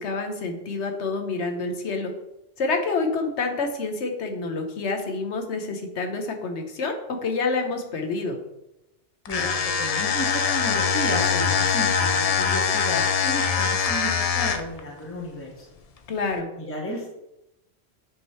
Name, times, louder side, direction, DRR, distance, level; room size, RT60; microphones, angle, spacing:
voice 1, 0.0-2.1 2.6-8.4 16.1-16.5, left 3 dB, 80° left, 4 dB, 1.2 m, -28 dB
sound 1, 9.3-14.8, left 6 dB, 55° left, 0.4 m, -23 dB
voice 2, 9.3-15.7 16.6-17.1, left 1 dB, 10° left, -2 dB, 1.1 m, -33 dB
8.4 x 3.1 x 4.3 m, 0.88 s
omnidirectional pair, 1.2 m